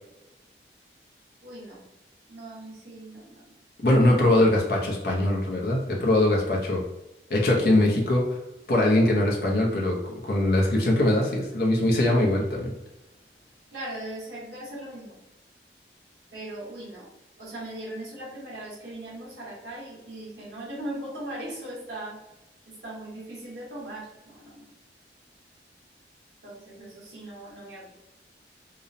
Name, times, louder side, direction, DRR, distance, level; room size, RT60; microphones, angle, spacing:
voice 1, 1.4-1.8 2.3-3.4 4.0-4.2 13.7-15.2 16.3-17.1 17.4-22.2 22.7-24.7 26.4-27.9, right 1 dB, 75° right, -6 dB, 1.1 m, -39 dB
voice 2, 3.8-6.8 7.3-8.2 8.7-10.0 10.2-12.7, left 1 dB, 55° left, -2 dB, 0.5 m, -22 dB
2.8 x 2.0 x 2.6 m, 0.95 s
head